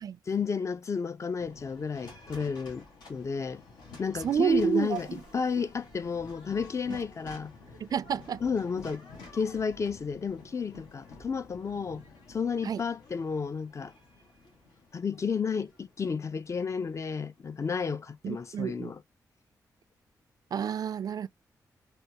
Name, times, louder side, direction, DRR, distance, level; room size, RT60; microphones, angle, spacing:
voice 1, 0.3-3.6 4.0-7.5 8.4-9.1 9.3-13.9 14.9-19.0, left 5 dB, 45° left, 0.5 m, -32 dB
sound 1, 1.4-17.6, left 3 dB, 90° left, 1.3 m, -51 dB
voice 2, 4.2-5.2 6.9-7.0 7.8-8.4 12.6-12.8 18.2-18.9 20.5-21.3, right 7 dB, 60° right, 0.4 m, -29 dB
3.3 x 2.5 x 2.8 m
cardioid pair, 65°, 7 cm